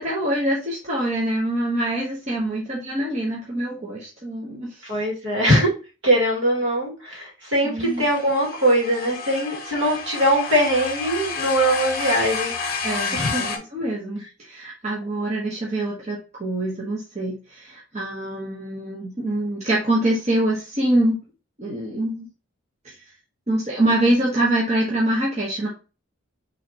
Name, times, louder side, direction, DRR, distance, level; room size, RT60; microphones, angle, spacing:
voice 1, 0.0-4.9 7.6-8.1 12.8-21.2 21.6-22.3 22.8-22.9 23.5-25.7, right 1 dB, 30° right, -4 dB, 1.1 m, -25 dB
voice 2, 4.8-5.7 6.0-12.5 13.1-13.4, right 1 dB, 60° right, -3 dB, 2.1 m, -21 dB
sound 1, 7.8-13.6, left 5 dB, 45° left, 0.8 m, -30 dB
5.8 x 3.2 x 2.9 m, 0.32 s
head